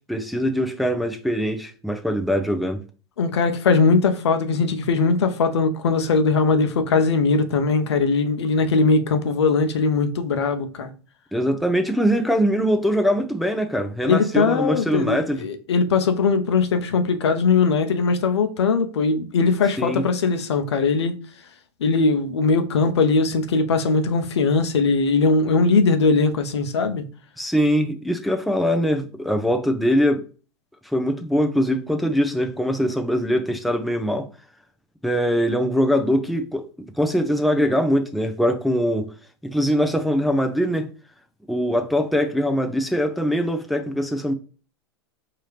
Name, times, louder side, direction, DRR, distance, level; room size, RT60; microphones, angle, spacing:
voice 1, 0.1-2.8 11.3-15.4 19.8-20.0 27.4-30.2 30.8-34.3 35.0-39.1 39.4-40.9 41.5-44.3, equal, ahead, 0.6 m, -22 dB
voice 2, 3.2-10.9 14.1-21.2 21.8-27.0, left 4 dB, 80° left, 0.8 m, -20 dB
4.7 x 2.8 x 3.3 m
hypercardioid pair, 100°, 14 cm